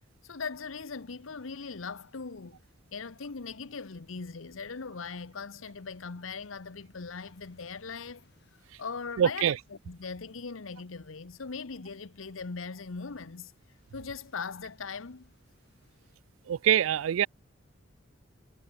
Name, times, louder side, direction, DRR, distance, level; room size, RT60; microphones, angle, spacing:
voice 1, 0.2-2.6 2.9-8.2 8.8-9.5 9.9-13.5 13.9-15.3, left 5 dB, 85° left, 0.9 m, -40 dB
sound 1, 0.8-16.2, left 1 dB, 55° left, 6.4 m, -68 dB
voice 2, 9.2-9.6 16.5-17.3, right 10 dB, 80° right, 0.3 m, -24 dB
head